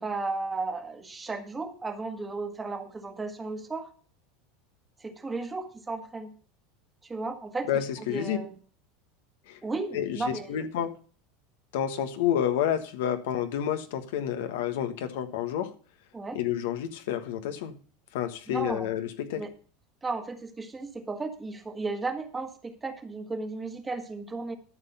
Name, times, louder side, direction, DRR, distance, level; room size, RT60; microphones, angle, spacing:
voice 1, 0.0-3.9 5.0-6.3 7.0-7.7 8.0-8.5 9.6-10.7 16.1-16.4 18.5-18.9 19.3-19.5 20.0-24.6, right 3 dB, 15° right, 1.4 m, -34 dB
voice 2, 7.7-8.4 9.5-9.6 9.9-10.9 11.7-15.7 16.3-17.8 18.1-19.4, left 10 dB, 80° left, 1.3 m, -29 dB
12.5 x 5.8 x 5.5 m
supercardioid pair, 125°, 0 cm